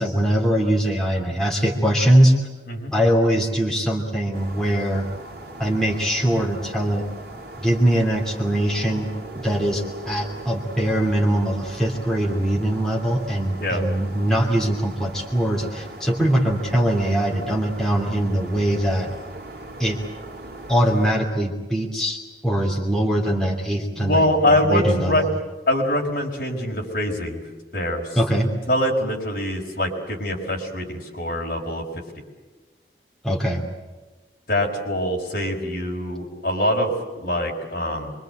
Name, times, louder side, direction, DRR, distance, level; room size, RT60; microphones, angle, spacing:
voice 1, 0.0-2.4 2.9-5.1 5.6-7.1 7.6-9.1 9.3-19.1 19.8-20.0 20.7-25.3 28.1-28.5 33.2-33.6, right 1 dB, 5° left, -2 dB, 2.9 m, -22 dB
sound 1, 4.3-21.1, right 2 dB, 60° right, 2.3 m, -39 dB
voice 2, 24.0-25.2 25.7-27.4 27.7-28.1 28.7-31.8 34.5-38.1, left 1 dB, 55° left, 0 dB, 5.2 m, -24 dB
25.5 x 24.0 x 8.0 m, 1.3 s
head